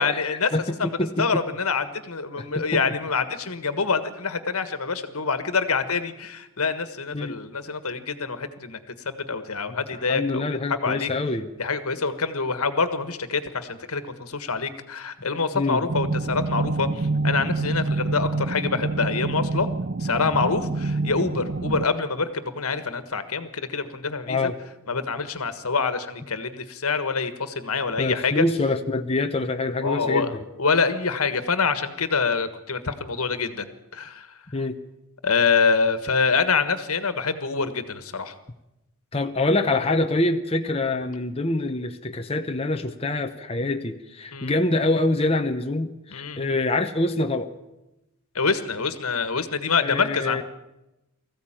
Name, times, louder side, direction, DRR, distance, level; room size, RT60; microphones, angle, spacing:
voice 1, 0.0-0.5 0.8-0.9 1.2-8.8 9.0-11.1 11.6-19.7 20.0-24.5 24.9-28.4 29.8-33.7 33.9-34.3 35.2-38.3 44.3-44.5 46.1-46.4 48.3-50.4, left 4 dB, 85° left, 11 dB, 1.6 m, -26 dB
voice 2, 0.5-1.4 2.4-2.8 7.1-7.4 10.1-11.5 15.5-15.8 24.3-24.5 28.0-30.4 34.5-34.8 39.1-47.5 49.8-50.4, left 2 dB, 25° left, 5 dB, 0.8 m, -25 dB
sound 1, 15.9-21.9, right 3 dB, 45° right, 0.6 m, -27 dB
19.5 x 15.0 x 8.9 m, 0.96 s
head